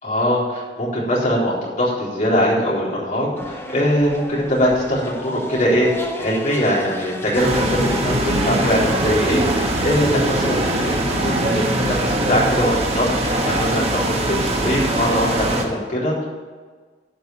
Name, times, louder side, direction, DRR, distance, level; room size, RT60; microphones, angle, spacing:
voice 1, 0.0-16.3, equal, 45° left, -6 dB, 3.9 m, -21 dB
sound 1, 3.4-11.2, left 1 dB, 15° left, 1.1 m, -35 dB
sound 2, 7.4-15.6, right 1 dB, 35° right, 1.5 m, -21 dB
12.0 x 5.3 x 8.8 m, 1.5 s
head